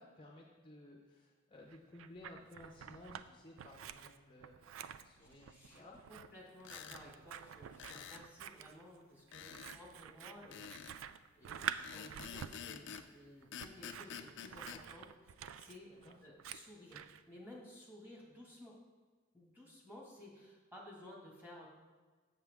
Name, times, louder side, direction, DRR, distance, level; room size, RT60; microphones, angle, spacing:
voice 1, 0.0-6.1 15.9-16.1, left 1 dB, 25° left, -1 dB, 0.7 m, -56 dB
Scissors, 1.7-3.3 3.6-17.2, right 9 dB, 70° right, 0.3 m, -48 dB
voice 2, 5.2-10.9 11.3-15.9 16.2-17.0 17.3-18.8 19.3-21.7, left 1 dB, 10° right, -4 dB, 1.7 m, -56 dB
sound 1, 6.6-7.0 7.8-8.3 9.3-9.8 10.5-11.0 11.8-13.1 13.5-14.8, left 8 dB, 60° left, 0.4 m, -48 dB
7.4 x 6.7 x 3.5 m, 1.4 s
head